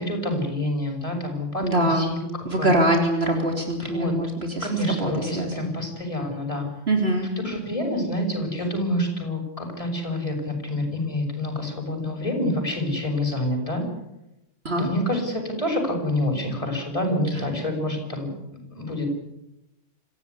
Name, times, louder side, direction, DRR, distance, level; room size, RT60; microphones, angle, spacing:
voice 1, 0.0-2.2 2.6-2.7 3.8-4.1 4.6-6.7 7.4-13.8 14.8-18.3 18.7-19.1, left 1 dB, 25° left, 1 dB, 7.1 m, -27 dB
voice 2, 1.6-2.1 2.5-5.7 6.9-7.3 14.6-14.9 17.3-17.4, right 1 dB, 55° right, 3 dB, 3.8 m, -24 dB
27.5 x 16.0 x 9.7 m, 0.89 s
omnidirectional pair, 1.3 m